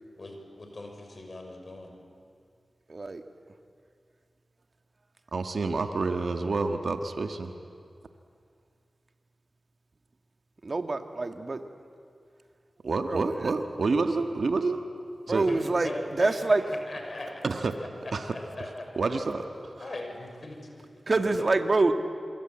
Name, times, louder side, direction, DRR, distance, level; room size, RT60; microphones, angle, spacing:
voice 1, 0.2-1.9 15.3-17.4 18.0-19.2 19.8-20.6 21.1-21.6, left 2 dB, 55° left, 3 dB, 6.0 m, -40 dB
voice 2, 2.9-3.2 10.6-11.6 13.1-13.5 15.3-15.9 16.2-16.6 21.1-21.9, right 3 dB, 50° right, 7 dB, 1.8 m, -26 dB
voice 3, 5.3-7.5 12.8-14.8 15.3-15.5 17.4-17.7 18.1-18.3 19.0-19.7, right 3 dB, 75° right, 6 dB, 1.5 m, -28 dB
28.0 x 23.0 x 8.9 m, 2.3 s
cardioid pair, 40°, 0 cm